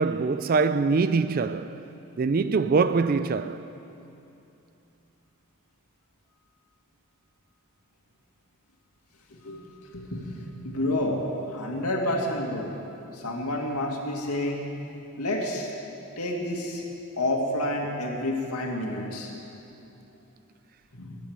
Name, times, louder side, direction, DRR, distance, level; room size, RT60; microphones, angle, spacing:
voice 1, 0.0-1.9 2.2-3.7, right 4 dB, 40° right, 0.3 m, -24 dB
voice 2, 9.9-12.7 13.1-14.7 15.2-15.7 16.2-16.8 17.2-19.3 20.9-21.2, left 1 dB, 85° left, 2.4 m, -29 dB
17.0 x 8.5 x 9.8 m
head